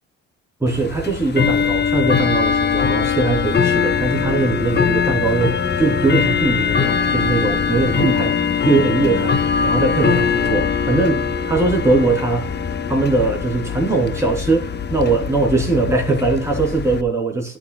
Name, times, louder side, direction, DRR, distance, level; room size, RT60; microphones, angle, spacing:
voice 1, 0.6-8.4 8.6-12.5 12.9-17.6, right 3 dB, 10° right, 3.2 m, -20 dB
Bell / Tick-tock, 0.7-17.0, left 6 dB, 35° left, 0.7 m, -21 dB
sound 1, 4.2-9.2, left 2 dB, 15° left, 4.2 m, -35 dB
13.5 x 6.1 x 2.2 m
cardioid pair, 90°, 30 cm